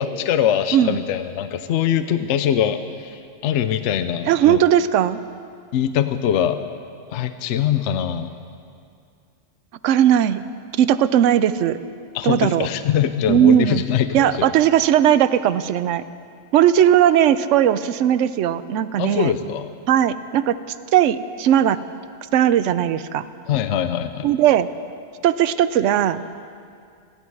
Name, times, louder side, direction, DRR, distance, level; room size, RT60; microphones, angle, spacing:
voice 1, 0.0-4.6 5.7-6.6 7.1-8.3 12.1-14.5 19.0-19.7 23.5-24.3, left 9 dB, 70° left, 10 dB, 0.9 m, -22 dB
voice 2, 4.3-5.2 9.8-10.4 10.8-11.8 12.2-12.7 13.3-13.9 14.1-16.0 16.5-19.3 19.9-20.6 20.9-21.8 22.3-23.2 24.2-24.7 25.2-26.4, right 10 dB, 75° right, 14 dB, 0.9 m, -17 dB
28.0 x 11.0 x 4.7 m, 2.3 s
omnidirectional pair, 1.3 m